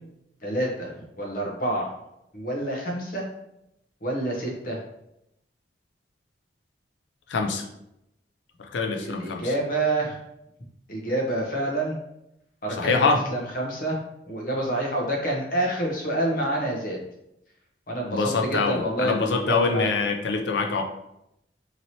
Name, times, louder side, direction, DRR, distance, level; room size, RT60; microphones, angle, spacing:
voice 1, 0.4-1.9 2.3-3.2 4.0-4.8 9.0-10.2 10.9-12.0 12.6-14.0 14.3-17.0 17.9-19.9, right 1 dB, 50° left, -1 dB, 0.8 m, -28 dB
voice 2, 7.3-7.7 8.6-9.5 12.8-13.2 18.1-20.8, left 4 dB, 80° left, 3 dB, 0.4 m, -25 dB
2.9 x 2.9 x 2.7 m, 0.84 s
head